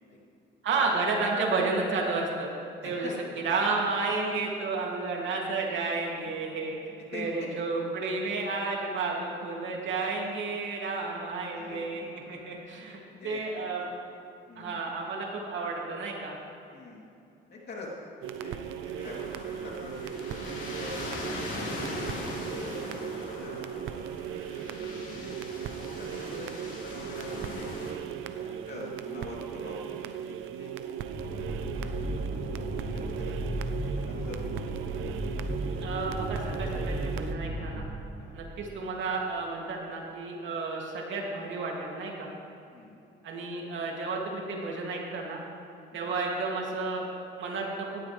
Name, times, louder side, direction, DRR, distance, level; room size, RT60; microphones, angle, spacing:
voice 1, 0.6-2.5 2.8-3.1 3.4-6.7 7.1-13.8 14.5-16.4 35.8-37.8 38.3-42.3 43.2-45.4 45.9-48.0, right 3 dB, 70° right, -2 dB, 2.9 m, -31 dB
voice 2, 2.8-3.7 6.1-7.5 11.5-12.2 13.1-13.8 14.5-14.8 16.7-17.1 17.5-17.9 18.4-25.3 26.0-30.7 31.4-31.5 31.8-33.5 33.8-34.8 38.2-38.4 42.7-43.0 45.9-46.1, left 2 dB, 55° left, -4 dB, 3.5 m, -46 dB
sound 1, 18.2-37.3, right 9 dB, 90° right, 0.6 m, -38 dB
sound 2, 19.0-27.9, left 2 dB, 70° left, 3.6 m, -39 dB
sound 3, 31.1-37.8, right 1 dB, 35° right, 2.7 m, -34 dB
17.5 x 12.5 x 3.5 m, 2.7 s
cardioid pair, 90°, 20 cm